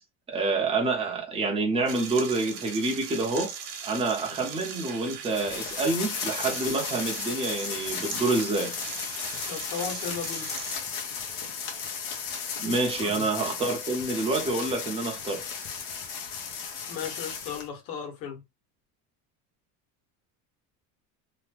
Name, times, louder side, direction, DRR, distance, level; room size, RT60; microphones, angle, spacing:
voice 1, 0.3-3.5 3.8-8.7 12.6-15.4, right 3 dB, 10° right, 0.6 m, -27 dB
sound 1, 1.9-10.8, right 6 dB, 50° right, 0.8 m, -39 dB
sound 2, 5.3-17.7, left 6 dB, 65° left, 1.0 m, -35 dB
voice 2, 9.4-10.5 13.0-13.3 16.6-18.4, left 6 dB, 85° left, 1.4 m, -36 dB
3.0 x 2.2 x 3.3 m
cardioid pair, 155°, 48 cm